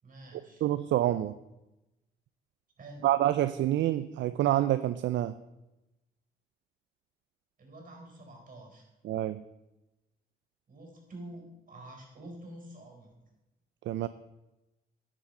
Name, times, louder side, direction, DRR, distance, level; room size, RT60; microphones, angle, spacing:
voice 1, 0.0-0.6 2.8-3.1 7.6-8.9 10.7-13.1, right 1 dB, 40° right, 2 dB, 4.2 m, -48 dB
voice 2, 0.6-1.3 3.0-5.3 9.0-9.4 13.9-14.1, right 13 dB, 65° right, 13 dB, 0.4 m, -27 dB
10.0 x 7.5 x 5.4 m, 0.98 s
cardioid pair, 90°, 20 cm